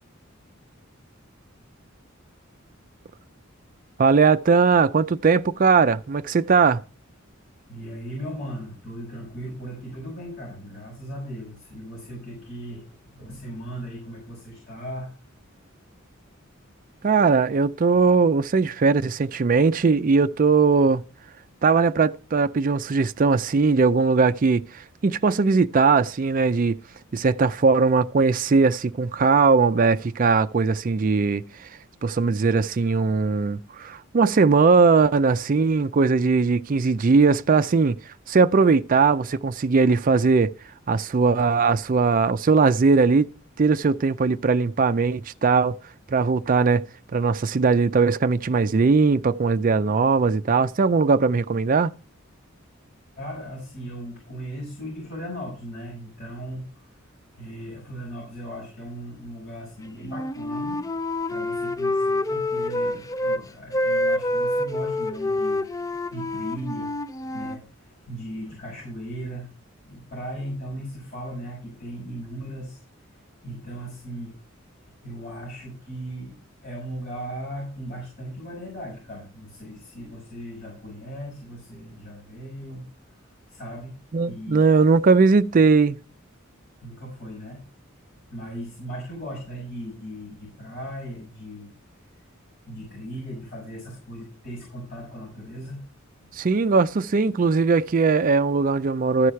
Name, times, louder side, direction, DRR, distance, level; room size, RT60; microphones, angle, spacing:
voice 1, 4.0-6.8 17.0-21.0 21.6-26.8 27.1-31.7 32.0-38.0 38.3-40.5 40.9-43.3 43.6-45.8 46.1-46.8 47.1-51.9 84.1-86.0 96.4-99.3, right 4 dB, 40° right, 0.4 m, -19 dB
voice 2, 7.7-15.1 15.6-15.7 53.2-56.8 57.3-60.8 61.3-65.6 66.1-66.9 67.3-69.5 69.8-72.8 73.4-74.3 75.0-76.4 76.6-82.9 83.5-84.7 86.8-87.7 88.3-91.7 92.7-95.8 96.2-96.3, equal, 45° left, 5.8 m, -37 dB
Wind instrument woodwind instrument, 60.0-63.4 63.7-67.6, left 1 dB, 15° left, 0.4 m, -27 dB
13.5 x 4.9 x 5.6 m
head